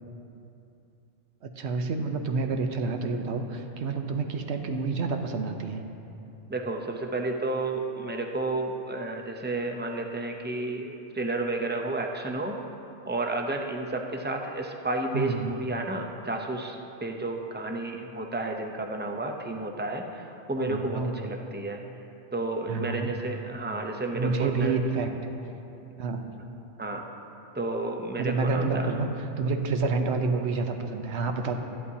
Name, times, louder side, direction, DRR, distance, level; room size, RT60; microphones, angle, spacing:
voice 1, 1.4-5.8 15.1-15.5 20.6-21.2 22.7-23.1 24.1-25.1 26.0-26.2 28.2-29.1 29.4-31.6, right 4 dB, 70° right, 5 dB, 1.0 m, -28 dB
voice 2, 6.5-12.6 13.1-21.8 22.3-24.8 26.8-27.0 27.5-28.9, right 2 dB, 15° right, 2 dB, 0.4 m, -31 dB
14.0 x 11.0 x 2.8 m, 2.8 s
omnidirectional pair, 1.2 m